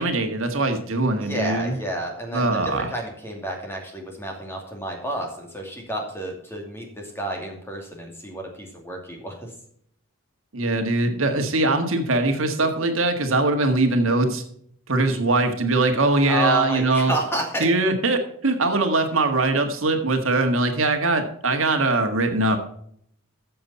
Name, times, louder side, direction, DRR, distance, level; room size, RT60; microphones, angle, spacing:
voice 1, 0.0-1.8 2.3-2.9 10.5-14.4 14.9-17.1 17.6-22.6, right 2 dB, 70° right, 6 dB, 1.7 m, -22 dB
voice 2, 1.2-9.5 16.2-17.7, right 1 dB, 10° left, 1 dB, 2.6 m, -30 dB
14.0 x 7.1 x 4.2 m, 0.66 s
head